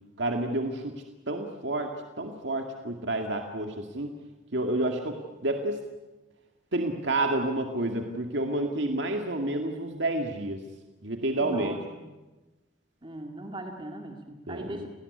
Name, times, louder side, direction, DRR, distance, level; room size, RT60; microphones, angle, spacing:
voice 1, 0.2-0.9 1.3-1.9 2.2-4.1 4.5-5.8 6.7-10.6 11.0-11.8 14.5-14.9, right 2 dB, 65° right, 3 dB, 2.2 m, -29 dB
voice 2, 11.4-12.1 13.0-14.9, right 1 dB, 25° right, 3 dB, 2.2 m, -39 dB
29.5 x 18.5 x 9.7 m, 1.1 s
head